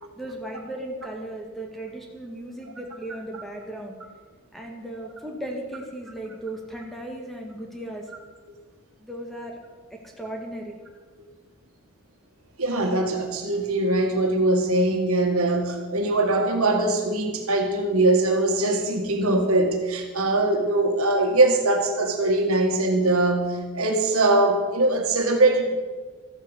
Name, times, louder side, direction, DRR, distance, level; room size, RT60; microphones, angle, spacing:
voice 1, 0.2-4.0 4.5-8.1 9.0-9.6 9.9-10.8, right 1 dB, ahead, 1 dB, 1.9 m, -36 dB
voice 2, 12.6-25.7, right 2 dB, 70° right, 3 dB, 1.9 m, -22 dB
14.0 x 8.6 x 8.1 m, 1.4 s
head